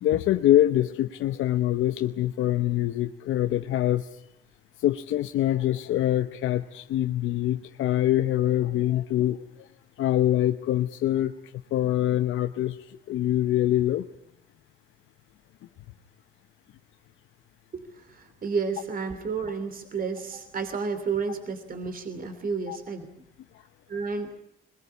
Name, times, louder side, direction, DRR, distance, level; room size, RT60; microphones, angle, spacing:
voice 1, 0.0-4.1 4.8-9.4 10.0-11.3 11.7-14.1 22.7-22.8, left 13 dB, 80° left, 8 dB, 0.9 m, -24 dB
voice 2, 17.7-23.1 23.9-24.3, right 5 dB, 45° right, 9 dB, 2.9 m, -31 dB
22.0 x 21.0 x 9.5 m, 0.81 s
cardioid pair, 90°, 20 cm